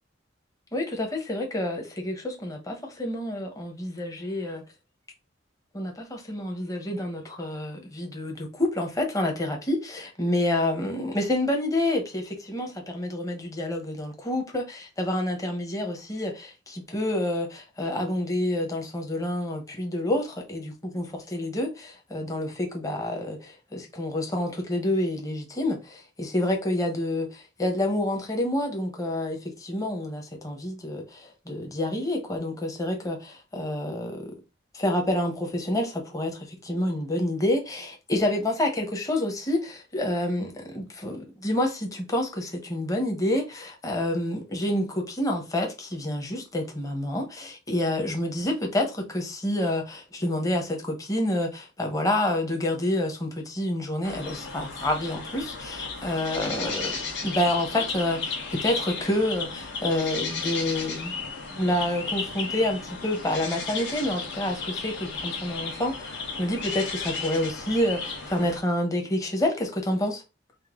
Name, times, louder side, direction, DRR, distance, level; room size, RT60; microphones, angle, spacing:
voice 1, 0.7-4.6 5.7-20.6 20.9-21.0 21.3-34.3 34.7-61.1 61.4-70.2, left 1 dB, 20° left, 0.9 m, -28 dB
sound 1, 54.0-68.6, left 4 dB, 65° left, 1.3 m, -34 dB
5.3 x 2.1 x 3.7 m
head